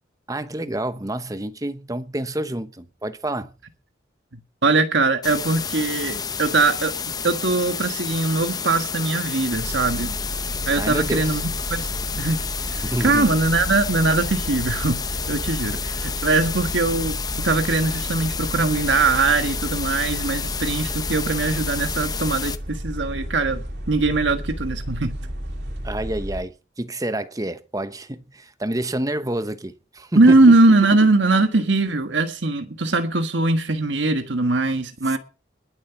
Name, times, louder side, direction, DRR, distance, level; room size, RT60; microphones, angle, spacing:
voice 1, 0.3-3.5 10.8-11.4 12.8-13.3 25.8-30.6, right 1 dB, 20° right, 0.9 m, -28 dB
voice 2, 4.6-6.9 7.2-10.2 10.7-11.9 12.2-12.4 12.7-15.0 15.3-17.1 17.4-25.1 30.1-35.2, right 3 dB, 85° right, 1.5 m, -21 dB
sound 1, 5.2-22.6, left 6 dB, 20° left, 0.7 m, -30 dB
sound 2, 9.5-26.4, equal, 65° right, 2.8 m, -32 dB
21.0 x 7.4 x 5.8 m
head